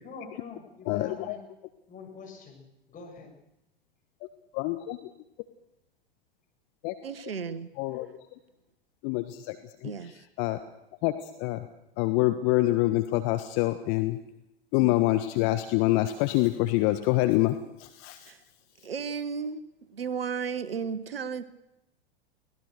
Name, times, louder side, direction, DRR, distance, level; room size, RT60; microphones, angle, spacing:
voice 1, 0.0-1.4 1.9-3.3, left 4 dB, 25° left, 7.1 m, -45 dB
voice 2, 0.9-1.4 4.5-5.0 6.8-6.9 7.8-8.1 9.0-9.6 9.8-9.9 10.4-10.6 11.0-11.1 11.4-11.7 12.0-14.2 14.7-17.5 17.8-18.3, left 18 dB, 45° left, 1.5 m, -26 dB
voice 3, 7.0-7.7 9.8-10.2 14.8-14.9 18.3-18.4 18.8-19.6 19.9-21.4, right 6 dB, 75° right, 1.4 m, -34 dB
24.0 x 18.5 x 6.8 m
figure-of-eight pair, 90°, 29 cm